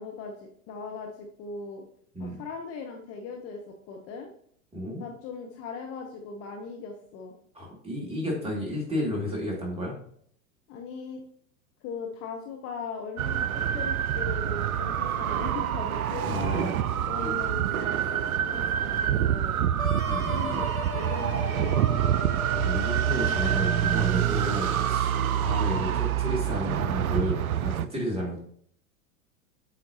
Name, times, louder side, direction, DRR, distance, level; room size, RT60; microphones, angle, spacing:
voice 1, 0.0-1.8 2.2-4.3 5.0-7.3 10.7-11.2 11.8-16.7 17.1-19.6 20.3-21.8 22.0-22.3 25.7-26.1, left 5 dB, 35° left, 2 dB, 0.9 m, -39 dB
voice 2, 4.7-5.1 7.5-10.0 16.2-17.3 20.0-20.6 22.5-28.4, left 1 dB, 15° right, -2 dB, 2.4 m, -32 dB
sound 1, 13.2-27.9, right 10 dB, 75° right, 0.5 m, -26 dB
sound 2, 19.8-24.3, left 3 dB, 75° left, 1.0 m, -38 dB
7.9 x 4.4 x 2.8 m, 0.62 s
figure-of-eight pair, 95°, 43 cm